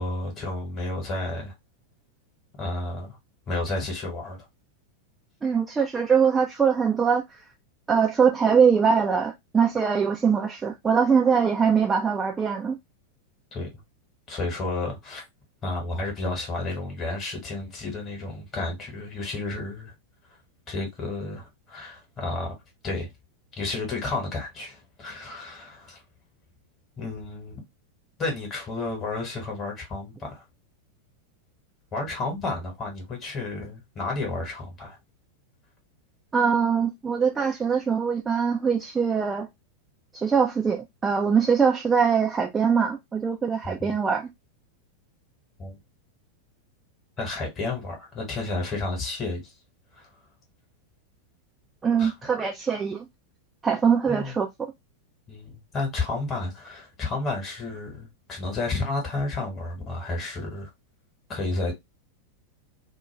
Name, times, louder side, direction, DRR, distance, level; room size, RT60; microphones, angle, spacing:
voice 1, 0.0-1.5 2.6-3.2 3.5-4.4 13.5-13.7 14.3-15.3 15.6-19.9 20.7-22.5 22.8-23.1 23.6-26.0 27.0-27.6 28.2-30.4 31.9-35.0 43.6-43.9 45.6-45.8 47.2-49.5 49.9-50.1 52.0-52.1 54.1-54.3 55.3-60.7 61.3-61.7, left 2 dB, 25° left, 1.2 m, -31 dB
voice 2, 5.4-7.4 7.9-12.8 36.3-39.5 40.1-44.3 51.8-53.1 53.6-54.5, right 6 dB, 15° right, 0.3 m, -22 dB
2.4 x 2.2 x 3.2 m
figure-of-eight pair, 90°, 0 cm